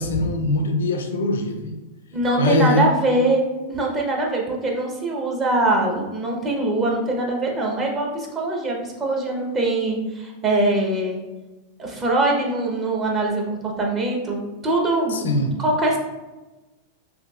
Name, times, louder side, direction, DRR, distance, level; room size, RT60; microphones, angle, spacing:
voice 1, 0.0-1.8 2.4-2.9 15.1-15.6, left 2 dB, 85° left, 5 dB, 0.5 m, -22 dB
voice 2, 2.1-11.2 11.8-15.3 15.6-16.0, right 2 dB, 30° right, -1 dB, 0.8 m, -23 dB
3.8 x 2.6 x 2.3 m, 1.1 s
hypercardioid pair, 110°, 0 cm